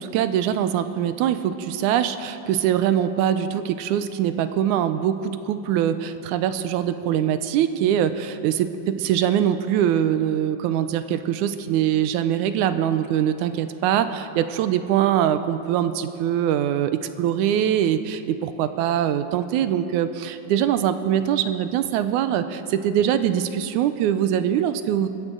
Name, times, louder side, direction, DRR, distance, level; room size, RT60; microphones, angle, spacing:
voice 1, 0.0-25.1, right 10 dB, 90° right, 11 dB, 2.1 m, -23 dB
24.5 x 14.0 x 3.8 m, 2.8 s
omnidirectional pair, 3.5 m